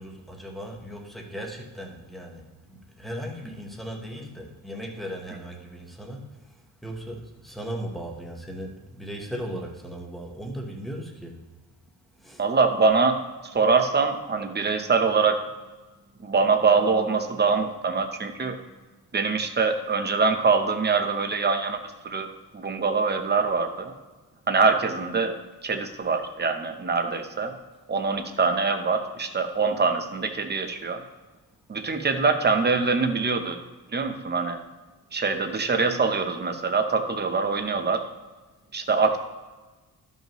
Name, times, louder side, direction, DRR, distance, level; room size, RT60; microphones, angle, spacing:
voice 1, 0.0-2.4 2.7-6.3 6.8-11.4 12.2-12.4 32.6-32.7, equal, ahead, 0 dB, 1.0 m, -37 dB
voice 2, 12.4-13.2 13.5-15.4 16.2-18.6 19.1-21.8 22.0-22.3 22.5-23.9 24.5-25.3 25.6-27.5 27.9-31.0 31.7-33.6 33.9-34.6 35.1-38.0 38.7-39.2, right 4 dB, 25° right, 6 dB, 0.7 m, -24 dB
13.5 x 5.5 x 3.0 m, 1.2 s
wide cardioid pair, 180°, 39 cm